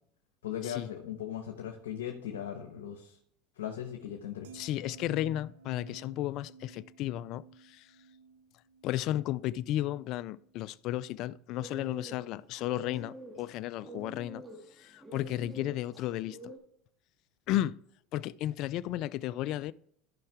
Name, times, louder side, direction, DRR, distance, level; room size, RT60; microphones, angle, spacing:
voice 1, 0.4-3.2 3.6-4.5, left 10 dB, 90° left, 1.2 m, -38 dB
sound 1, 4.4-10.7 11.1-11.4, right 5 dB, 90° right, 0.8 m, -55 dB
voice 2, 4.5-8.0 8.8-14.4 14.7-16.4 17.5-17.8 18.1-19.7, left 14 dB, 55° left, 0.3 m, -34 dB
sound 2, 11.5-16.6, right 1 dB, 10° right, 2.1 m, -47 dB
13.5 x 5.5 x 3.5 m
supercardioid pair, 100°, 0 cm